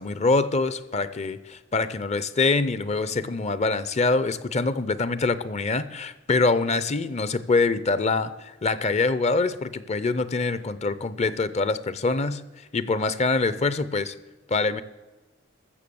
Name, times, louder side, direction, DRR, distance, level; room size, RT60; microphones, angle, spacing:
voice 1, 0.0-14.1 14.5-14.8, left 3 dB, 35° left, 15 dB, 0.6 m, -25 dB
14.5 x 6.9 x 6.9 m, 1.2 s
head